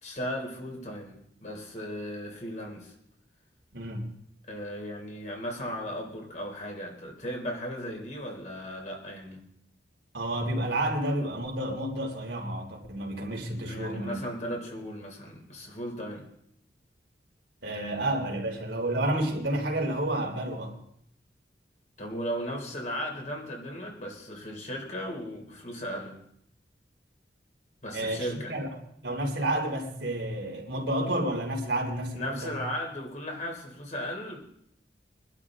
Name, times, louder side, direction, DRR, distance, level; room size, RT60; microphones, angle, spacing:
voice 1, 0.0-2.9 4.5-9.5 13.5-16.3 22.0-26.2 27.8-28.5 32.2-34.4, equal, 40° left, 3.4 m, -36 dB
voice 2, 3.7-4.1 10.1-14.2 17.6-20.8 27.9-28.7 29.0-32.6, right 1 dB, 85° right, 3.4 m, -30 dB
23.5 x 11.5 x 3.7 m
head